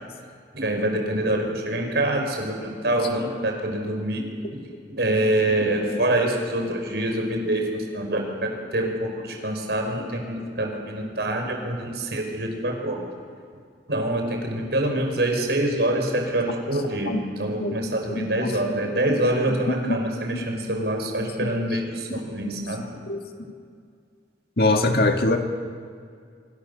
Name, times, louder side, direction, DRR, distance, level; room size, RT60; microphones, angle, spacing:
voice 1, 0.5-4.2 5.0-13.0 13.9-17.1 17.4-22.9, right 1 dB, 75° right, 3 dB, 5.4 m, -25 dB
voice 2, 17.1-17.8 18.1-19.2 19.4-20.0 20.3-20.8 21.2-21.8 23.1-23.2 24.6-25.4, left 2 dB, 60° left, 4 dB, 2.0 m, -25 dB
26.0 x 25.0 x 6.9 m, 2.2 s
head